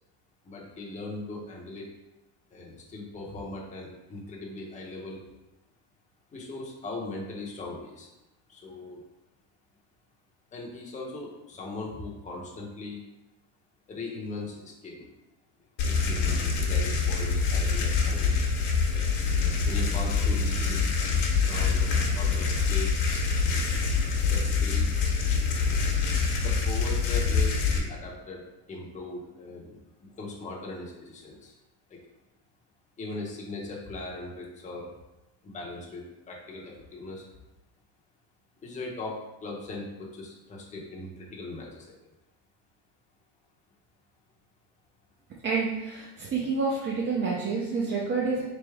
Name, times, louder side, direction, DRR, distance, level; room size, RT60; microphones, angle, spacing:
voice 1, 0.5-1.8 2.5-5.2 6.3-8.1 8.5-9.0 10.5-13.0 13.9-15.1 15.8-18.5 18.9-19.0 19.7-20.9 21.5-21.8 22.1-22.9 24.3-24.9 26.4-28.4 28.7-29.8 30.2-31.5 33.0-34.9 35.4-36.0 36.3-37.2 38.6-41.9, left 2 dB, 15° left, -3 dB, 0.7 m, -39 dB
sound 1, 15.8-27.8, left 5 dB, 60° left, 1.1 m, -25 dB
voice 2, 45.4-48.4, right 4 dB, 25° right, -4 dB, 0.5 m, -28 dB
3.9 x 3.3 x 3.5 m, 1.0 s
cardioid pair, 145°, 46 cm